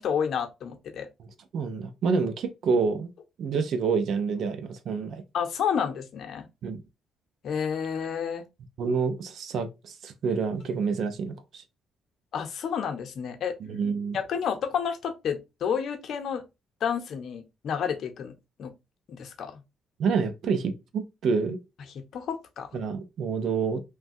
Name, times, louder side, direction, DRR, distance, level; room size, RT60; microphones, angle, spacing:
voice 1, 0.0-1.1 5.3-6.5 7.4-8.4 12.3-13.6 14.1-16.4 16.8-18.3 18.6-18.7 19.1-19.6 22.1-22.7, left 7 dB, 65° left, 0.7 m, -30 dB
voice 2, 1.2-3.1 3.4-5.2 6.6-6.8 8.8-11.6 13.6-14.2 20.0-21.6 22.7-23.8, right 5 dB, 65° right, 0.5 m, -28 dB
3.1 x 2.2 x 2.6 m
cardioid pair, 90°, 0 cm